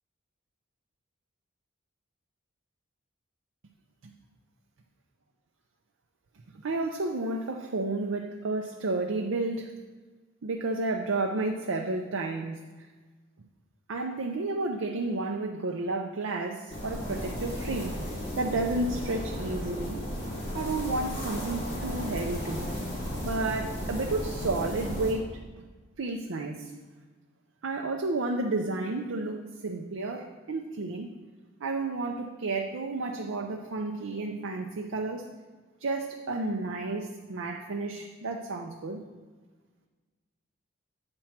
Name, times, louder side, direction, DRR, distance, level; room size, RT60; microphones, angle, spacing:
voice 1, 6.5-9.7 10.4-12.6 13.9-20.0 20.5-22.7 23.2-25.4 26.0-26.7 27.6-31.1 31.6-35.3 35.8-39.0, right 2 dB, 80° right, 3 dB, 0.6 m, -31 dB
sound 1, 16.7-25.1, equal, 30° left, 2.2 m, -34 dB
8.7 x 4.5 x 5.8 m, 1.3 s
head